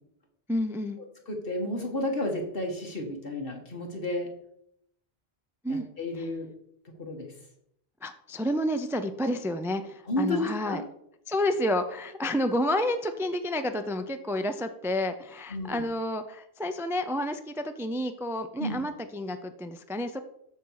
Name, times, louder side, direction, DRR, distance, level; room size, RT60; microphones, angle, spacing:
voice 1, 0.5-1.0 5.6-5.8 6.2-6.3 8.0-10.8 11.3-20.2, left 1 dB, 5° right, 7 dB, 0.5 m, -30 dB
voice 2, 1.3-4.3 5.7-6.5 7.0-7.3 10.1-10.8 15.5-15.9 18.6-18.8, left 1 dB, 60° left, 1 dB, 2.1 m, -32 dB
13.5 x 5.5 x 4.8 m, 0.76 s
omnidirectional pair, 1.1 m